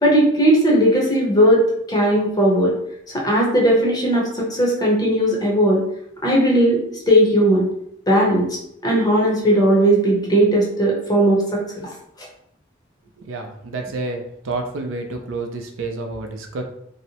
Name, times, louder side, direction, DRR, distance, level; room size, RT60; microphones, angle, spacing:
voice 1, 0.0-2.7 3.1-5.8 6.2-6.8 7.1-7.7 8.1-8.6 8.8-11.9, right 1 dB, 20° left, -3 dB, 0.6 m, -17 dB
voice 2, 13.3-16.6, right 3 dB, 85° right, 4 dB, 0.4 m, -29 dB
2.7 x 2.0 x 2.8 m, 0.74 s
head